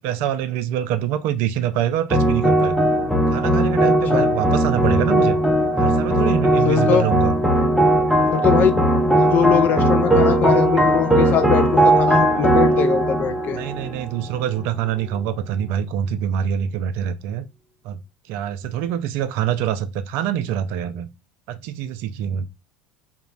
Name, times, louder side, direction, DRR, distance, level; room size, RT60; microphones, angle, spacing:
voice 1, 0.0-2.9 3.3-5.4 5.8-7.3 13.5-17.5 17.8-18.0 18.3-21.1 21.5-22.4, right 10 dB, 60° right, 0.3 m, -25 dB
sound 1, 2.1-14.6, right 1 dB, 5° right, 0.5 m, -18 dB
voice 2, 6.7-7.1 8.3-8.8 9.1-13.6, left 8 dB, 45° left, 0.4 m, -21 dB
2.9 x 2.0 x 2.3 m
hypercardioid pair, 75°, 4 cm